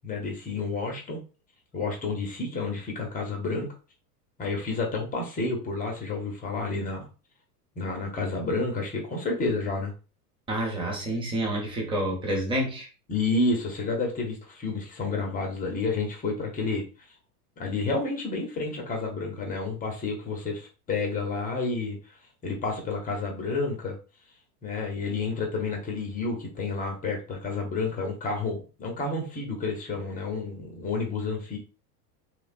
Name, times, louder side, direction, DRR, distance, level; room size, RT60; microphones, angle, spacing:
voice 1, 0.0-1.2 1.7-3.7 4.4-7.1 7.8-9.9 13.1-16.8 17.6-22.2 22.4-24.0 24.6-31.6, left 3 dB, 20° left, 0.5 m, -30 dB
voice 2, 10.5-12.9, right 1 dB, 10° right, 0.8 m, -28 dB
2.9 x 2.1 x 2.4 m
hypercardioid pair, 110°, 48 cm